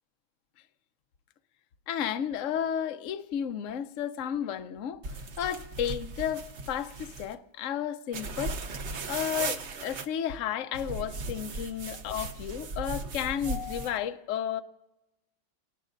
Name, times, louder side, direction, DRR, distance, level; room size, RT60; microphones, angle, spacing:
voice 1, 1.9-8.6 9.1-14.6, left 9 dB, 90° left, 0.6 m, -33 dB
sound 1, 5.0-7.3 8.1-10.1 10.7-14.0, right 3 dB, 60° right, 0.7 m, -37 dB
28.0 x 19.5 x 2.5 m
omnidirectional pair, 2.2 m